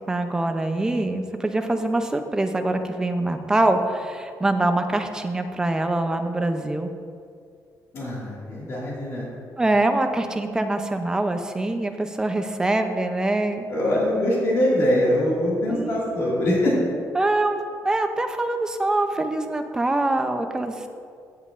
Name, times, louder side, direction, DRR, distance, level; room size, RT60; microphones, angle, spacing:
voice 1, 0.1-6.9 9.6-13.7 15.7-16.1 17.1-20.9, right 2 dB, 10° right, 6 dB, 0.4 m, -24 dB
voice 2, 7.9-9.3 13.7-16.7, left 1 dB, 45° left, -6 dB, 2.0 m, -23 dB
15.0 x 7.3 x 2.5 m, 2.3 s
cardioid pair, 180°, 7 cm